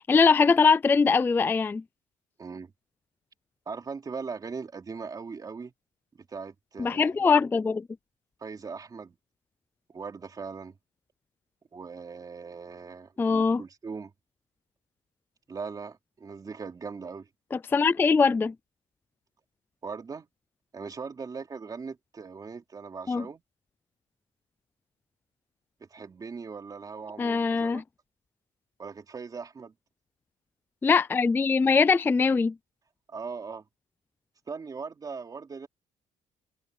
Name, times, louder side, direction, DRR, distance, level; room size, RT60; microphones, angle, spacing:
voice 1, 0.1-1.8 6.8-7.8 13.2-13.6 17.5-18.5 23.1-23.3 27.2-27.8 30.8-32.5, left 5 dB, 15° left, 0.3 m, -22 dB
voice 2, 2.4-2.7 3.7-5.7 6.1-7.3 8.4-9.2 9.9-10.8 11.7-14.1 15.5-17.3 19.8-20.3 20.7-23.4 25.8-27.8 28.8-29.7 33.1-33.6 34.5-35.7, right 5 dB, 25° right, 3.5 m, -39 dB
cardioid pair, 160°, 14 cm